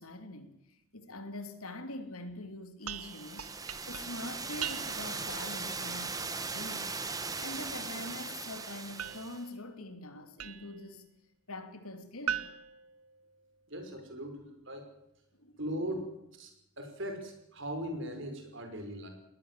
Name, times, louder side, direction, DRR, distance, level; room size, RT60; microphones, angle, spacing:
voice 1, 0.0-3.5 3.9-7.0 7.4-11.0 11.5-12.5 15.4-15.6, left 2 dB, 80° left, 3.0 m, -44 dB
sound 1, 2.9-9.5, right 4 dB, 15° right, 1.5 m, -39 dB
sound 2, 2.9-5.2 9.0-10.9 12.3-13.7, right 9 dB, 90° right, 1.0 m, -41 dB
voice 2, 13.7-14.9 15.6-16.1 16.3-19.1, equal, 55° right, 5.4 m, -39 dB
20.5 x 18.5 x 7.5 m
head